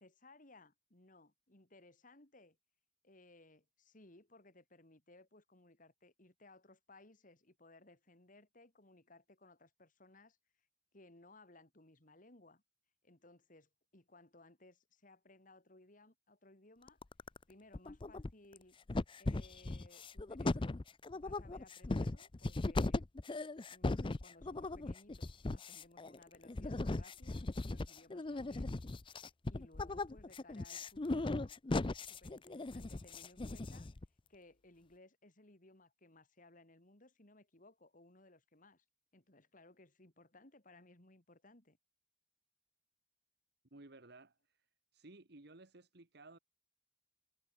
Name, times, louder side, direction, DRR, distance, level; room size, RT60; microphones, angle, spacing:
voice 1, 0.0-2.6 3.0-10.4 10.9-12.6 13.0-17.0 17.5-18.8 19.2-20.8 21.1-23.1 23.7-28.7 29.5-31.6 32.1-33.9 34.3-38.8 39.1-41.8, left 2 dB, 45° left, 3.2 m, -62 dB
sound 1, 16.9-17.4 17.7-18.6 18.9-34.1, left 2 dB, 30° left, 0.5 m, -38 dB
voice 2, 43.7-44.7 44.9-46.4, right 2 dB, 60° right, 1.6 m, -57 dB
head